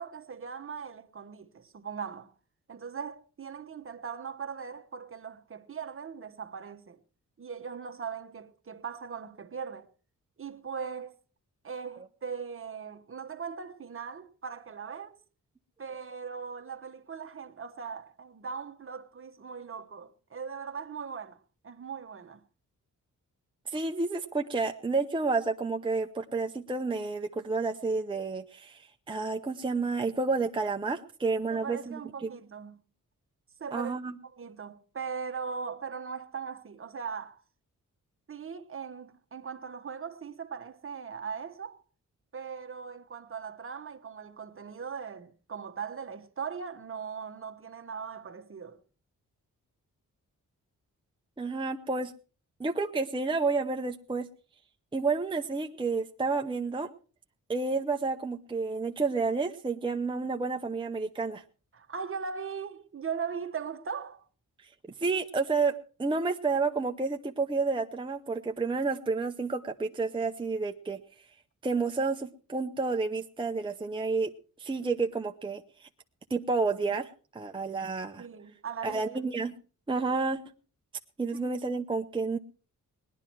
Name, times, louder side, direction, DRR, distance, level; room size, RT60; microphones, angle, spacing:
voice 1, 0.0-2.3 2.7-7.0 7.4-9.9 10.4-11.1 11.6-15.2 15.8-22.4 31.5-32.8 33.6-33.9 34.3-37.4 38.3-41.8 42.3-48.8 61.7-64.2 78.2-79.2 81.3-81.5, right 6 dB, 40° right, 1.2 m, -39 dB
voice 2, 23.7-32.3 33.7-34.1 51.4-52.1 52.6-54.3 54.9-56.9 57.5-61.4 65.0-71.0 71.6-74.3 74.6-75.9 76.3-78.3 78.8-79.5 79.9-80.4 81.2-82.4, right 4 dB, 15° right, 0.7 m, -30 dB
19.0 x 11.0 x 4.6 m
wide cardioid pair, 120°, 33 cm